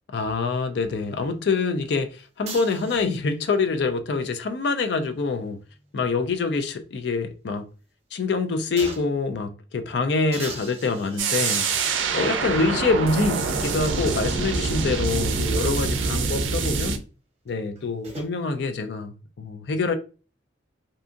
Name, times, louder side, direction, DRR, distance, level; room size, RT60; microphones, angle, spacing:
voice 1, 0.1-5.6 5.9-7.7 8.1-17.0 17.5-19.9, left 4 dB, 60° left, 0.4 m, -25 dB
sound 1, 2.4-3.4 5.2-6.7 7.1-7.2 8.8-9.3 10.3-11.9 12.8-12.9 17.5-18.3, right 3 dB, 35° right, 0.8 m, -41 dB
sound 2, 11.2-17.0, right 4 dB, 90° right, 0.4 m, -25 dB
2.7 x 2.4 x 2.5 m
head